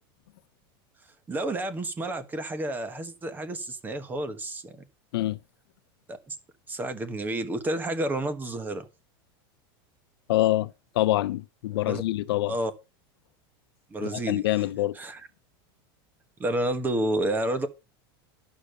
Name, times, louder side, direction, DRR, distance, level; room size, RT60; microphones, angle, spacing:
voice 1, 1.3-4.8 6.1-6.4 6.7-8.9 11.8-12.0 12.5-12.7 13.9-14.4 14.9-15.2 16.4-17.7, right 1 dB, 15° right, 1.4 m, -30 dB
voice 2, 10.3-12.5 14.0-15.0, left 16 dB, 85° left, 0.8 m, -26 dB
11.0 x 6.8 x 5.4 m
supercardioid pair, 155°, 13 cm